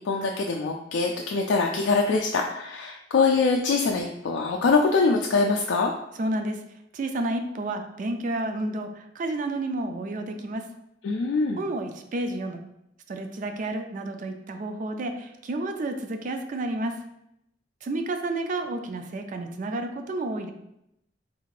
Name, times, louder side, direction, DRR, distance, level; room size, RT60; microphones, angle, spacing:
voice 1, 0.0-5.9 11.0-11.6, left 4 dB, 90° left, 1 dB, 0.3 m, -23 dB
voice 2, 6.2-6.6 6.9-10.6 11.6-12.6 13.1-17.0 17.8-20.5, right 2 dB, 45° right, 6 dB, 0.4 m, -30 dB
3.6 x 2.5 x 3.1 m, 0.81 s
head